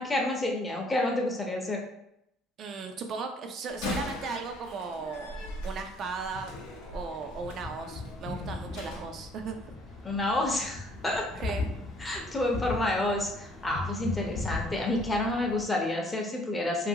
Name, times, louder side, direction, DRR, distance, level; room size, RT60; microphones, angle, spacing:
voice 1, 0.0-1.8 10.0-11.3 12.0-16.9, left 1 dB, 15° left, 0 dB, 0.6 m, -29 dB
voice 2, 2.6-5.4 5.6-6.5 6.9-9.7 11.3-11.7, right 4 dB, 45° right, 5 dB, 0.3 m, -36 dB
Slam, 3.7-9.1, left 2 dB, 80° left, 0.6 m, -40 dB
sound 1, 6.0-15.7, left 3 dB, 50° left, 0.9 m, -39 dB
2.6 x 2.5 x 2.7 m, 0.79 s
supercardioid pair, 110°, 0 cm